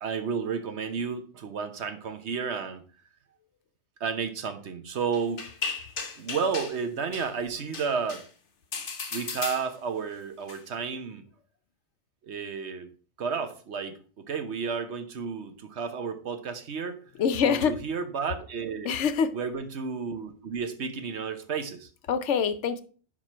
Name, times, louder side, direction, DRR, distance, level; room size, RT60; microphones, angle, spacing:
voice 1, 0.0-2.8 4.0-5.5 6.2-8.2 9.1-11.2 12.2-12.9 13.2-17.0 17.4-18.9 19.3-21.9, right 5 dB, 70° right, 1.2 m, -32 dB
sound 1, 5.1-6.8 7.1-7.3 7.7-8.3 8.7-10.0 10.5-10.6, left 5 dB, 50° left, 1.1 m, -35 dB
voice 2, 17.2-17.8 18.8-19.3 22.1-22.8, left 6 dB, 80° left, 1.0 m, -25 dB
11.0 x 3.7 x 4.3 m
omnidirectional pair, 1.2 m